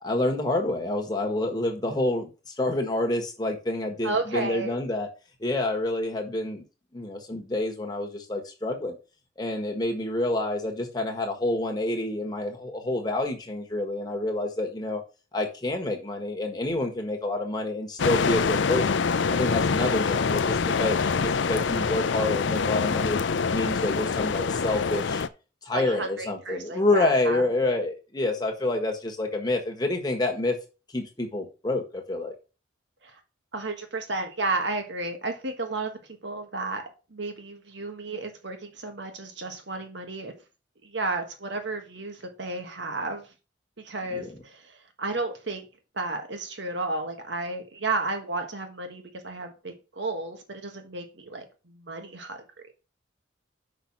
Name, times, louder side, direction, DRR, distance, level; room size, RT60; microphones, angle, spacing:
voice 1, 0.0-5.1 5.4-6.6 6.9-9.0 9.4-15.0 15.3-19.0 19.3-23.2 23.5-25.2 25.6-30.6 30.9-32.3 44.1-44.3, left 2 dB, 20° left, 1.5 m, -28 dB
voice 2, 4.0-4.8 25.7-27.4 33.0-33.2 33.5-40.3 40.8-43.3 43.8-45.7 45.9-52.7, right 3 dB, 65° right, 1.5 m, -33 dB
sound 1, 18.0-25.3, left 5 dB, 70° left, 0.5 m, -25 dB
5.8 x 5.5 x 5.9 m
head